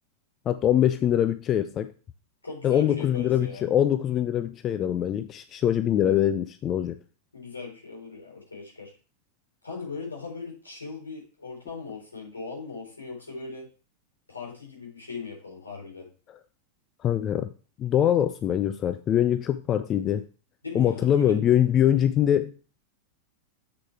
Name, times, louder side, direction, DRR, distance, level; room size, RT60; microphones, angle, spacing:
voice 1, 0.5-1.9 2.6-7.0 17.0-17.5 17.8-20.2 20.7-22.5, left 10 dB, 30° left, 11 dB, 0.4 m, -23 dB
voice 2, 2.4-3.7 7.3-8.9 9.6-13.7 14.3-16.1 20.6-21.3, left 4 dB, 80° left, -3 dB, 4.4 m, -39 dB
8.0 x 6.5 x 3.4 m, 0.36 s
figure-of-eight pair, 90°, 0 cm